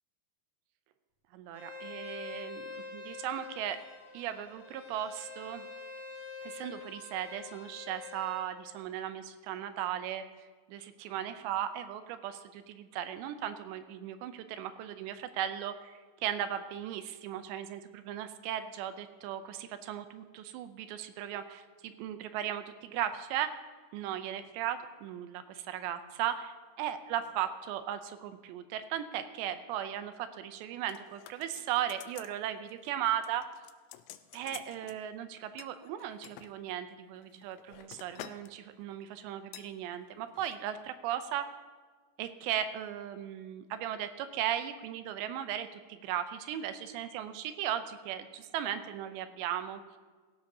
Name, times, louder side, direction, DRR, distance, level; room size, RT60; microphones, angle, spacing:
voice 1, 1.3-3.8 4.1-5.7 6.4-10.2 10.7-23.5 23.9-33.4 34.3-41.5 42.2-50.0, right 10 dB, 80° right, 10 dB, 2.8 m, -37 dB
Bowed string instrument, 1.5-8.5, left 4 dB, 50° left, 2.0 m, -46 dB
sound 1, 30.9-32.4 32.7-32.9 33.2-35.0 35.6-36.5 37.1-38.5 38.8-39.0 39.5-39.7 40.3-40.6 40.8-40.9, left 13 dB, 85° left, 2.9 m, -50 dB
17.0 x 15.5 x 2.8 m, 1.4 s
omnidirectional pair, 5.3 m